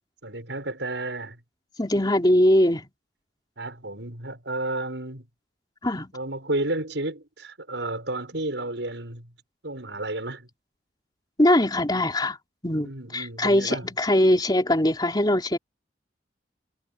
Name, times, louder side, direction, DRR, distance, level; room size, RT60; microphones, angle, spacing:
voice 1, 0.2-1.4 3.6-5.2 6.1-9.3 9.6-10.5 12.8-13.9, right 2 dB, 80° right, 6.6 m, -32 dB
voice 2, 1.8-2.9 5.8-6.1 11.4-12.4 12.6-15.6, left 1 dB, 25° left, 3.6 m, -21 dB
head